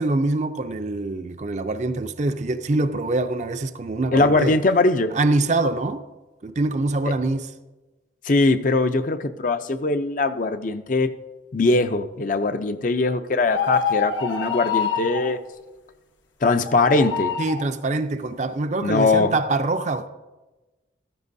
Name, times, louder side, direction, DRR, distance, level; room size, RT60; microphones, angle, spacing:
voice 1, 0.0-4.6 5.1-6.0 6.4-7.5 17.4-20.1, right 2 dB, 35° right, 0.5 m, -24 dB
voice 2, 4.1-5.1 8.2-11.1 11.5-15.4 16.4-17.3 18.8-19.3, left 3 dB, 45° left, 0.5 m, -21 dB
sound 1, 13.5-15.3 16.6-17.6, left 7 dB, 85° left, 1.2 m, -25 dB
15.0 x 13.5 x 2.7 m
head